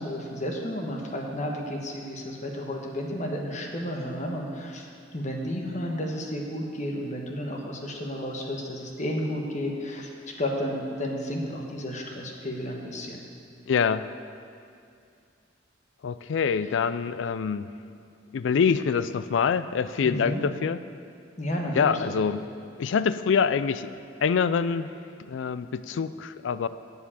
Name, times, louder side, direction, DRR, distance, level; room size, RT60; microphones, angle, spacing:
voice 1, 0.0-4.9 5.1-13.2 16.6-16.7 20.0-20.4 21.4-22.2, equal, 40° left, 1 dB, 1.3 m, -32 dB
voice 2, 13.7-14.1 16.0-17.7 18.3-20.8 21.7-22.4 22.8-23.9 24.2-24.9 25.2-26.7, left 6 dB, 80° left, 14 dB, 0.4 m, -25 dB
8.1 x 7.3 x 8.5 m, 2.4 s
head